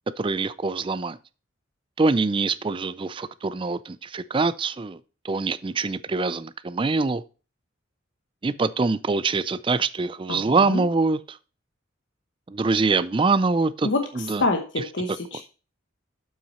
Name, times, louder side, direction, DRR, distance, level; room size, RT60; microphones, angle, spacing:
voice 1, 0.2-1.2 2.0-5.0 5.2-7.2 8.4-11.2 12.5-13.9 14.1-14.4, right 3 dB, 25° right, 0.4 m, -24 dB
voice 2, 10.3-10.8 13.8-15.4, left 2 dB, 65° left, 1.0 m, -27 dB
7.6 x 5.8 x 4.2 m
head